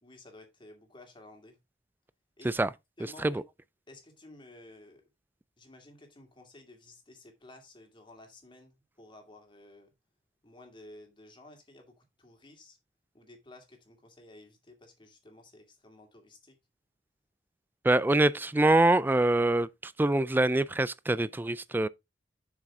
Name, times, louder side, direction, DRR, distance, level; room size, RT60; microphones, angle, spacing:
voice 1, 0.0-1.6 2.4-2.6 3.0-3.4 3.9-5.0 5.6-9.9 10.4-12.8 13.1-16.6, left 2 dB, 25° left, 2.3 m, -53 dB
voice 2, 17.8-21.9, right 2 dB, 10° right, 0.3 m, -25 dB
7.3 x 6.3 x 3.6 m
head